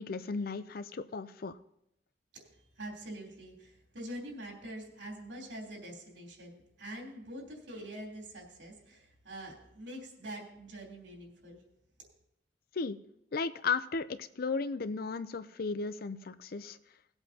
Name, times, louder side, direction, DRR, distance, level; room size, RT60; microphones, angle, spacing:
voice 1, 0.0-1.6 12.7-13.0 13.3-16.8, left 4 dB, 55° left, 13 dB, 0.5 m, -35 dB
voice 2, 2.3-11.6, right 1 dB, 80° right, -1 dB, 3.3 m, -45 dB
19.5 x 8.0 x 2.8 m, 0.80 s
head